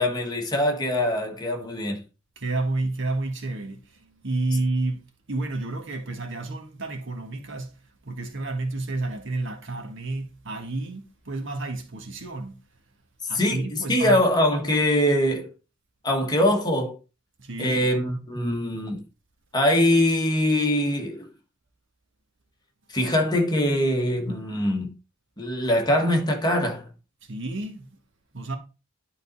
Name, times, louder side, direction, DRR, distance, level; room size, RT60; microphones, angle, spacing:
voice 1, 0.0-2.0 13.3-15.5 16.0-16.9 17.6-19.0 19.5-21.3 22.9-24.9 25.4-26.9, left 1 dB, 20° left, 1.4 m, -23 dB
voice 2, 2.4-5.0 5.3-7.8 8.0-12.6 13.3-14.2 17.4-17.9 27.2-27.9 28.3-28.6, right 2 dB, 60° right, 1.6 m, -30 dB
11.0 x 4.0 x 4.0 m
head